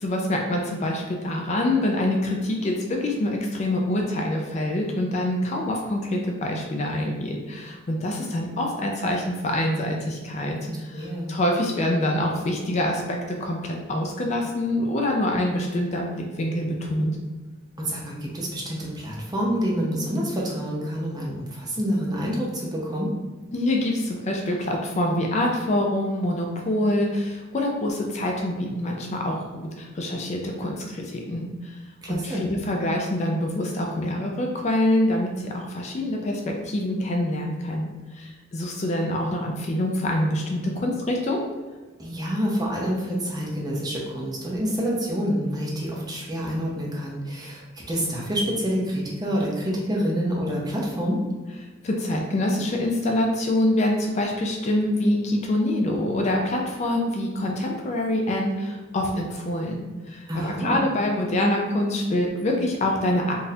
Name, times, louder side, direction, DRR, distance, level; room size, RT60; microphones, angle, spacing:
voice 1, 0.0-17.1 23.5-31.8 32.1-37.9 38.1-41.4 51.8-63.3, left 1 dB, 35° left, 1 dB, 0.4 m, -25 dB
voice 2, 10.7-11.3 17.8-23.1 32.0-32.4 42.0-51.2 60.3-60.8, equal, 20° right, -3 dB, 0.6 m, -27 dB
3.8 x 2.5 x 2.7 m, 1.3 s
head